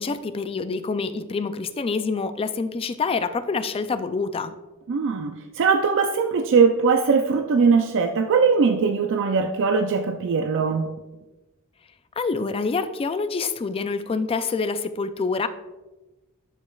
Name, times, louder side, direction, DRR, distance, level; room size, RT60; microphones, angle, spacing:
voice 1, 0.0-4.5 12.2-15.5, left 4 dB, 25° left, 11 dB, 0.3 m, -26 dB
voice 2, 4.9-10.9, right 5 dB, 60° right, 6 dB, 0.4 m, -20 dB
11.5 x 5.2 x 2.3 m, 1.1 s
head